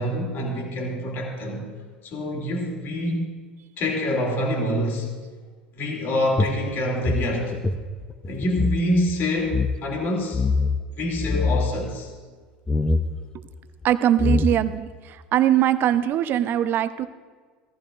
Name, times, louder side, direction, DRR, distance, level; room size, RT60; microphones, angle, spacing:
voice 1, 0.0-1.7 2.0-3.3 3.8-5.1 5.8-7.6 8.2-10.4 10.9-12.1, left 1 dB, 45° left, 0 dB, 3.0 m, -26 dB
sound 1, 6.4-8.8 9.1-9.2 9.5-9.7 10.3-10.8 11.2-11.7 12.7-13.1 13.8-13.9 14.2-14.8, left 3 dB, 15° left, 0.8 m, -23 dB
voice 2, 13.8-14.9 15.3-17.1, right 11 dB, 45° right, 13 dB, 0.7 m, -21 dB
17.5 x 14.5 x 2.5 m, 1.5 s
figure-of-eight pair, 75°, 5 cm